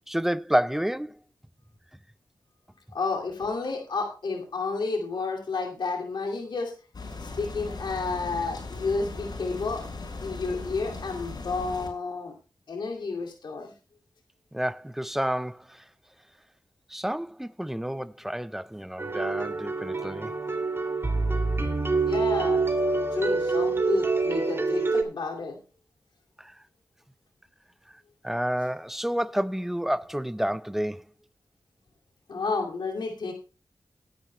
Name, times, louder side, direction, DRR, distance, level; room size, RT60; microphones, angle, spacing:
voice 1, 0.1-1.2 14.5-15.8 16.9-20.3 26.4-26.5 28.2-31.1, equal, 5° right, 0.6 m, -29 dB
voice 2, 2.9-6.7 7.2-9.8 10.2-12.3 12.7-13.7 22.0-22.6 23.1-25.6 32.3-33.3, left 4 dB, 85° left, 2.4 m, -31 dB
sound 1, 6.9-11.9, left 3 dB, 65° left, 5.4 m, -38 dB
sound 2, 19.0-25.0, right 3 dB, 30° right, 2.5 m, -26 dB
19.0 x 10.5 x 2.2 m
cardioid pair, 60°, 8 cm